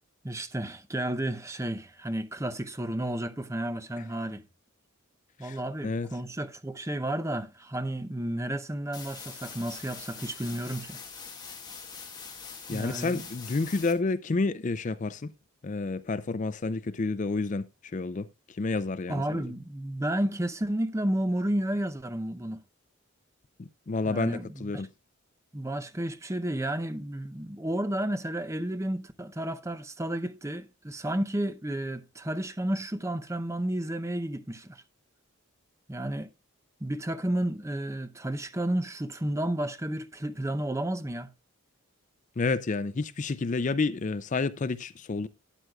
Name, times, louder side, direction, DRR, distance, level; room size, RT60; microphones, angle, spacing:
voice 1, 0.2-4.4 5.4-11.0 12.7-13.2 19.1-22.6 24.1-24.8 25.5-34.8 35.9-36.3 36.8-41.3, right 1 dB, 15° right, 0.6 m, -32 dB
sound 1, 8.9-13.9, left 5 dB, 20° left, 1.8 m, -43 dB
voice 2, 12.7-15.3 15.6-19.4 23.6-24.9 42.4-45.3, left 3 dB, 35° left, 0.4 m, -30 dB
12.5 x 9.2 x 2.3 m
head